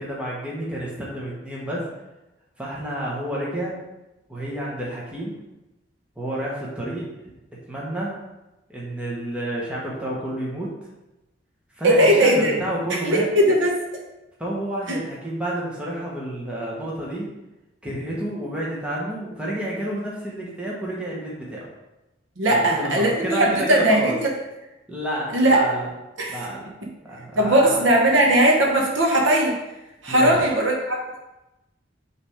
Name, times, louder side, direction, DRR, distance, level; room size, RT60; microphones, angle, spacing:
voice 1, 0.0-1.9 2.6-3.8 4.3-5.3 6.2-7.1 7.7-8.2 8.7-10.7 11.8-13.3 14.4-17.3 17.8-21.7 22.5-24.2 24.9-25.9 26.3-26.7 27.0-27.8 30.1-30.4, right 1 dB, 5° right, -6 dB, 1.1 m, -29 dB
voice 2, 11.8-12.6 12.9-13.8 14.9-15.0 22.4-24.3 25.3-25.6 26.2-26.4 27.3-29.5 30.0-31.0, right 1 dB, 75° right, -1 dB, 1.0 m, -19 dB
5.9 x 3.3 x 4.9 m, 0.98 s
head